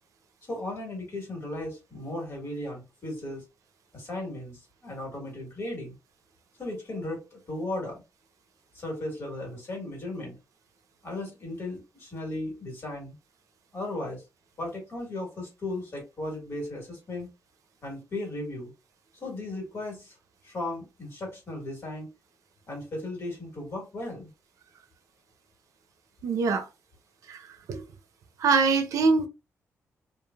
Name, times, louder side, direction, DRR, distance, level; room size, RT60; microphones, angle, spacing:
voice 1, 0.5-3.4 3.9-5.9 6.6-8.0 8.7-10.4 11.0-13.1 13.7-14.2 14.6-17.3 17.8-18.7 19.2-20.2 20.4-22.1 22.7-24.3, left 1 dB, 45° left, 1.6 m, -36 dB
voice 2, 26.2-26.7 27.3-27.8 28.4-29.3, right 4 dB, 75° right, 0.5 m, -24 dB
3.2 x 2.5 x 2.2 m
wide cardioid pair, 160°, 6 cm